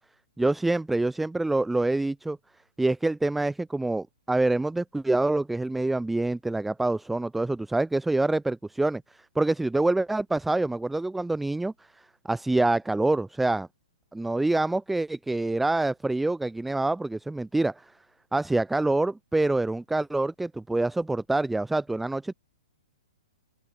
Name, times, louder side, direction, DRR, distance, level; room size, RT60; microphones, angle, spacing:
voice 1, 0.4-2.4 2.8-13.7 14.1-17.9 18.3-22.3, right 2 dB, 5° right, 0.8 m, -26 dB
open air
hypercardioid pair, 160°, 4 cm